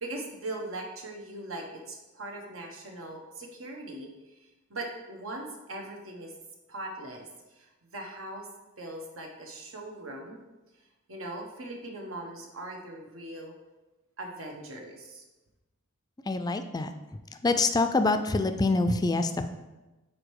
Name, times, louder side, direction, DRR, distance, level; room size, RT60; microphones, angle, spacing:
voice 1, 0.0-4.3 4.7-6.3 6.7-8.5 8.8-10.4 11.1-13.5 14.2-15.2, right 1 dB, 80° right, 1 dB, 1.1 m, -40 dB
voice 2, 16.3-16.9 17.4-19.5, left 3 dB, 20° left, 8 dB, 0.3 m, -25 dB
5.0 x 4.3 x 4.7 m, 1.1 s
head